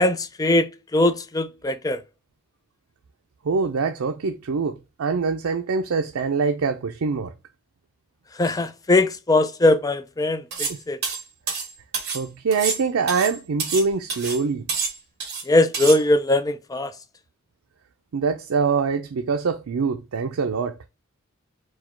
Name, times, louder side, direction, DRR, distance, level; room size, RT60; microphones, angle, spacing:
voice 1, 0.0-2.0 8.4-11.0 15.5-16.9, left 2 dB, 15° left, 0.4 m, -21 dB
voice 2, 3.4-7.3 10.7-10.8 12.1-14.7 18.1-20.8, right 5 dB, 85° right, 0.5 m, -24 dB
sound 1, 10.5-10.8 11.0-12.2 12.5-13.9 14.1-14.4 14.7-15.4 15.7-16.0, right 5 dB, 55° right, 1.9 m, -28 dB
4.7 x 2.2 x 4.2 m
head